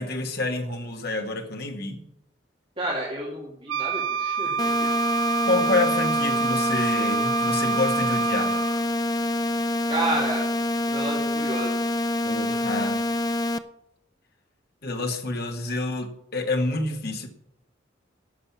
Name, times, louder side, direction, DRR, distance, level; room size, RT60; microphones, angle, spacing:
voice 1, 0.0-2.0 5.4-8.7 12.2-13.0 14.8-17.3, left 2 dB, 50° left, 4 dB, 1.7 m, -28 dB
voice 2, 2.8-4.9 9.9-10.4 10.9-11.7, right 1 dB, 25° right, -5 dB, 2.4 m, -30 dB
Wind instrument woodwind instrument, 3.7-8.8, right 6 dB, 90° right, 0.3 m, -27 dB
sound 1, 4.6-13.6, left 1 dB, 20° left, 0.4 m, -26 dB
11.5 x 6.6 x 8.5 m, 0.81 s
head